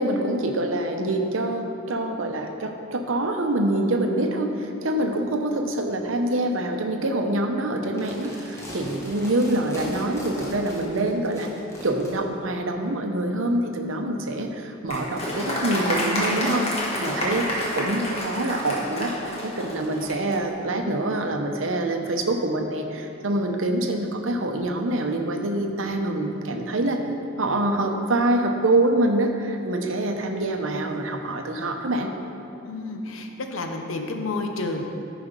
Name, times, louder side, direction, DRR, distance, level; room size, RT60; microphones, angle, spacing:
voice 1, 0.0-11.5 11.8-16.6 17.0-27.0 27.4-32.1, right 1 dB, 80° right, 4 dB, 0.8 m, -25 dB
sound 1, 7.9-12.1, equal, 15° left, 1.3 m, -39 dB
Applause, 14.9-20.4, left 1 dB, 30° left, 1.4 m, -28 dB
voice 2, 32.7-34.8, left 3 dB, 85° left, 4 dB, 0.8 m, -30 dB
9.8 x 5.1 x 5.2 m, 2.8 s
head